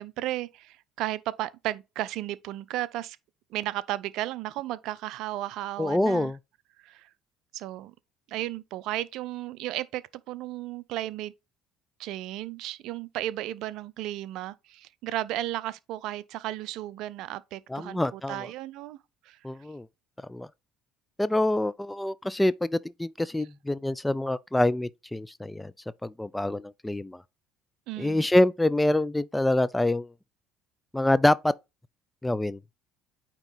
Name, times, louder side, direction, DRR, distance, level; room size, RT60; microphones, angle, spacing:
voice 1, 0.0-3.2 3.5-6.3 6.8-7.1 7.5-7.9 8.3-11.3 12.0-19.0 19.3-19.4 27.9-28.3, right 14 dB, 65° right, 0.4 m, -34 dB
voice 2, 5.8-6.4 17.7-18.5 19.4-19.9 20.3-20.5 21.2-25.7 26.0-27.2 28.0-30.1 30.9-31.5 32.2-32.6, left 1 dB, 10° left, 0.4 m, -26 dB
8.9 x 3.0 x 3.8 m
hypercardioid pair, 60°, 0 cm